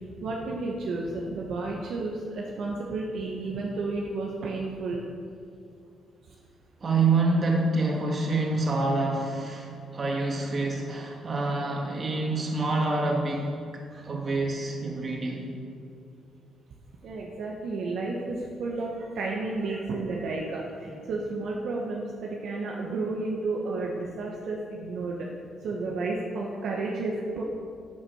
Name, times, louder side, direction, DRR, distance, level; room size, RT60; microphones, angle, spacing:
voice 1, 0.2-5.0 17.0-20.6 21.0-25.3 25.6-27.4, right 3 dB, 70° right, -2 dB, 1.4 m, -32 dB
voice 2, 6.8-13.6 13.9-15.5 20.8-21.0, right 3 dB, 40° right, -1 dB, 2.6 m, -27 dB
12.5 x 7.3 x 6.5 m, 2.5 s
cardioid pair, 90°, 0 cm